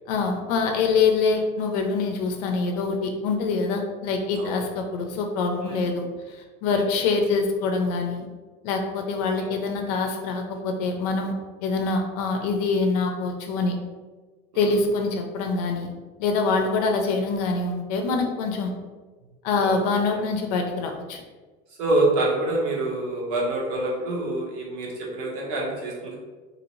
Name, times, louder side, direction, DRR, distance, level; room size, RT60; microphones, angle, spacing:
voice 1, 0.1-8.3 8.6-11.3 11.6-13.8 14.6-15.9 16.2-18.7 19.4-21.2, left 4 dB, 70° left, 3 dB, 0.5 m, -25 dB
voice 2, 21.8-26.1, right 2 dB, 65° right, -3 dB, 1.1 m, -26 dB
2.7 x 2.6 x 3.0 m, 1.3 s
cardioid pair, 165°, 21 cm